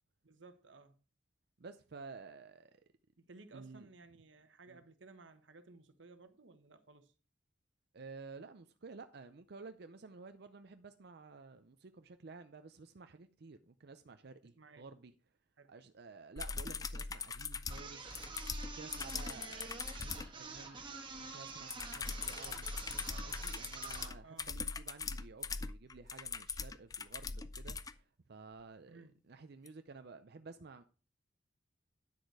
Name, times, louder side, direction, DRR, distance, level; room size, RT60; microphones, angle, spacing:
voice 1, 0.2-1.0 3.2-7.1 14.6-14.9 15.6-15.7 24.2-24.5 28.9-29.2, right 3 dB, 90° right, 1.1 m, -58 dB
voice 2, 1.6-2.7 3.5-3.9 4.7-4.8 7.9-15.1 15.7-18.3 18.6-20.9 21.2-22.7 23.1-30.8, right 4 dB, 60° right, 0.6 m, -53 dB
sound 1, 16.4-20.3 21.7-27.9 29.7-29.8, left 4 dB, 20° left, 0.4 m, -41 dB
sound 2, 17.7-24.2, right 4 dB, 25° right, 1.5 m, -48 dB
9.9 x 6.5 x 4.7 m
head